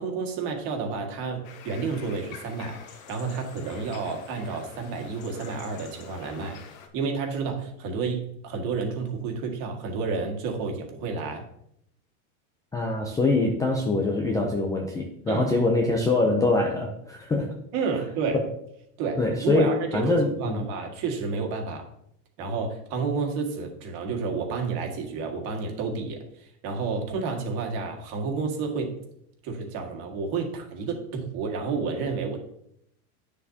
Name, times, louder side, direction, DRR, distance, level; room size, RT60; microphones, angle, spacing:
voice 1, 0.0-6.6 6.9-11.5 15.3-15.5 17.7-18.4 19.0-21.9 22.4-29.0 29.4-32.4, right 4 dB, 50° right, 2 dB, 1.8 m, -30 dB
sound 1, 1.4-6.9, left 6 dB, 65° left, 1.5 m, -47 dB
voice 2, 12.7-17.5 19.2-20.7, left 2 dB, 10° left, 0 dB, 0.4 m, -24 dB
9.3 x 6.8 x 2.8 m, 0.73 s
supercardioid pair, 140°, 45 cm